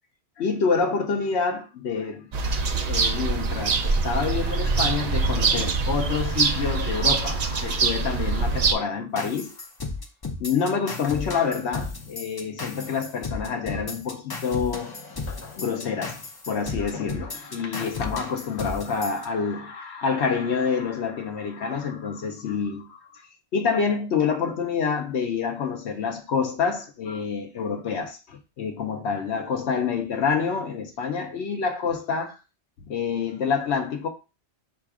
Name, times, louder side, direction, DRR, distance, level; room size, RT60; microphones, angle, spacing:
voice 1, 0.4-9.5 10.4-14.9 15.3-32.4 32.9-34.1, left 5 dB, 70° left, 1.0 m, -27 dB
sound 1, 2.3-8.7, right 4 dB, 55° right, 0.4 m, -24 dB
sound 2, 9.2-19.3, left 3 dB, 30° left, 0.4 m, -35 dB
4.4 x 2.4 x 4.7 m
omnidirectional pair, 1.2 m